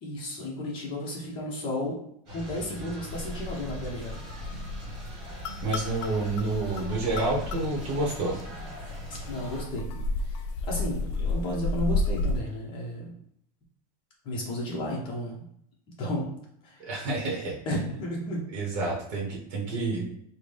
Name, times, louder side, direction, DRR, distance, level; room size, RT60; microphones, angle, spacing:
voice 1, 0.0-2.0 2.3-4.1 9.1-9.9 10.2-10.3 10.7-13.1 14.2-15.4 16.0-16.3 16.6-16.8 17.6-18.5, equal, 25° left, -2 dB, 0.8 m, -33 dB
sound 1, 2.3-9.6, right 1 dB, 20° right, 1.4 m, -41 dB
sound 2, 3.1-12.4, left 2 dB, 50° left, 0.4 m, -33 dB
voice 2, 5.6-8.4 16.8-17.6 18.5-20.1, right 2 dB, 40° right, -2 dB, 0.9 m, -29 dB
3.8 x 2.1 x 3.3 m, 0.71 s
supercardioid pair, 180°, 19 cm